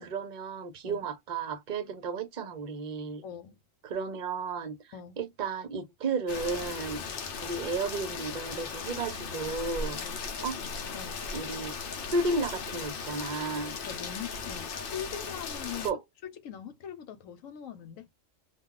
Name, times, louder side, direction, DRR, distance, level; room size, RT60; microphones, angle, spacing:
voice 1, 0.0-3.2 3.8-4.8 5.2-7.0 7.4-10.0 10.4-10.6 11.3-11.8 12.1-13.7 15.8-16.0, right 3 dB, 45° right, 0.8 m, -33 dB
voice 2, 3.2-3.6 4.9-5.2 7.0-7.3 10.0-10.3 10.9-11.3 13.9-18.1, left 9 dB, 85° left, 1.1 m, -42 dB
Rain, 6.3-15.9, left 5 dB, 55° left, 0.7 m, -37 dB
2.4 x 2.3 x 3.7 m
omnidirectional pair, 1.3 m